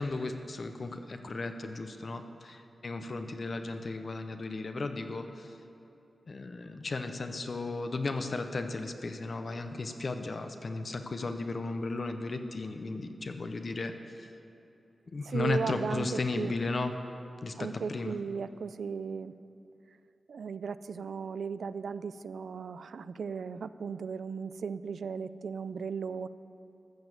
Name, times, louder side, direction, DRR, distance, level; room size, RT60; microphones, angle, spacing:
voice 1, 0.0-5.6 6.3-14.3 15.1-16.9 17.4-18.1, left 3 dB, 40° left, 7 dB, 0.7 m, -35 dB
voice 2, 15.2-16.5 17.6-19.3 20.3-26.3, right 5 dB, 80° right, 14 dB, 0.3 m, -36 dB
14.0 x 7.0 x 8.0 m, 2.8 s
wide cardioid pair, 175°, 0 cm